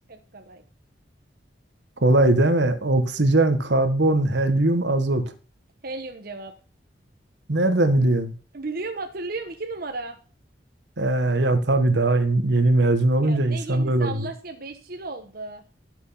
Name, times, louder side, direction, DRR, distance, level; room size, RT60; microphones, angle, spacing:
voice 1, 0.1-0.6 5.8-6.5 8.5-10.2 13.2-15.6, right 3 dB, 55° right, 1.1 m, -34 dB
voice 2, 2.0-5.2 7.5-8.3 11.0-14.2, right 2 dB, 70° right, 1.3 m, -20 dB
12.0 x 6.2 x 5.8 m
head